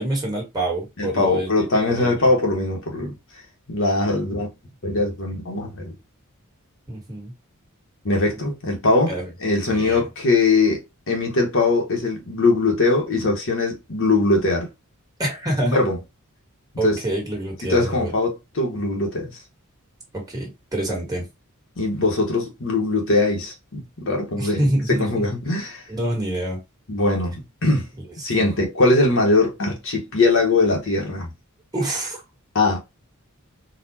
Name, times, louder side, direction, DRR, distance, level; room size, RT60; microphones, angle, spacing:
voice 1, 0.0-1.7 2.0-2.3 6.9-7.3 9.1-9.3 9.7-10.1 15.2-15.8 16.8-18.1 20.1-21.2 24.4-25.3 25.9-26.6 28.3-28.5 31.7-32.2, right 1 dB, 15° right, 1.6 m, -26 dB
voice 2, 1.0-3.1 3.7-4.5 4.8-5.9 8.0-9.1 9.4-14.7 15.6-16.0 16.8-17.0 17.7-19.4 21.8-25.8 26.9-27.9 28.2-31.3 32.5-32.8, left 2 dB, 60° left, 1.2 m, -21 dB
4.1 x 2.5 x 2.8 m
head